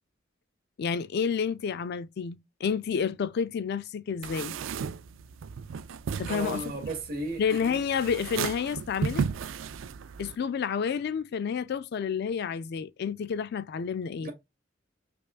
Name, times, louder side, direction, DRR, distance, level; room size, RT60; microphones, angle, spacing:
voice 1, 0.8-4.6 6.2-6.6 7.4-9.3 10.2-14.3, left 6 dB, 55° left, 0.3 m, -30 dB
sound 1, 4.2-10.4, right 6 dB, 75° right, 0.4 m, -35 dB
voice 2, 6.2-7.4 14.2-14.3, right 2 dB, 50° right, 1.6 m, -34 dB
5.1 x 2.4 x 2.4 m
head